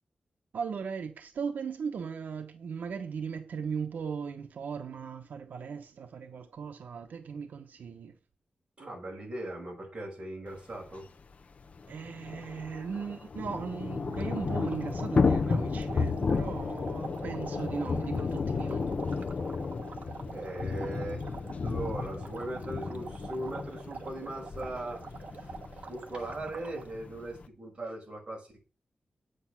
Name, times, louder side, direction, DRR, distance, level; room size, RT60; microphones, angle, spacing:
voice 1, 0.5-8.2 11.9-18.9, right 6 dB, 90° right, 1.0 m, -38 dB
voice 2, 8.8-11.1 20.3-21.3 21.6-25.0 25.3-28.6, right 1 dB, 35° right, 5.8 m, -39 dB
Thunder / Rain, 10.9-11.0 11.2-11.3 11.6-27.5, left 4 dB, 50° left, 1.0 m, -33 dB
sound 1, 14.1-26.9, right 5 dB, 60° right, 1.3 m, -46 dB
9.2 x 8.0 x 6.0 m
wide cardioid pair, 130°, 3 cm